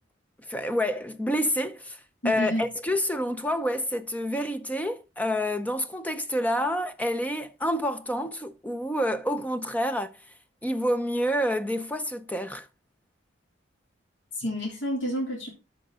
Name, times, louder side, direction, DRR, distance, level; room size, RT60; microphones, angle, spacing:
voice 1, 0.5-2.0 2.2-10.1 10.6-12.7, equal, 10° left, 0.5 m, -28 dB
voice 2, 2.2-2.7 14.3-15.5, equal, 70° left, 3.2 m, -29 dB
13.0 x 5.2 x 3.7 m
head